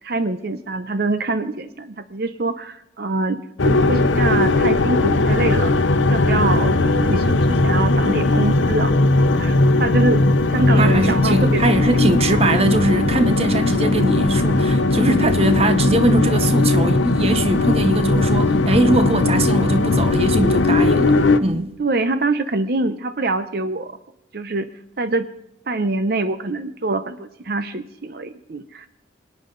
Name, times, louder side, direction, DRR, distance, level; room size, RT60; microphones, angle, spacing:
voice 1, 0.0-5.7 6.1-8.9 9.4-11.6 21.8-24.0 24.3-24.7 25.0-25.3 25.7-28.9, right 2 dB, 50° right, 0.7 m, -24 dB
sound 1, 3.6-21.4, left 2 dB, 80° left, 0.8 m, -18 dB
voice 2, 10.8-21.7, right 1 dB, 30° right, 0.9 m, -21 dB
27.5 x 9.5 x 3.9 m
head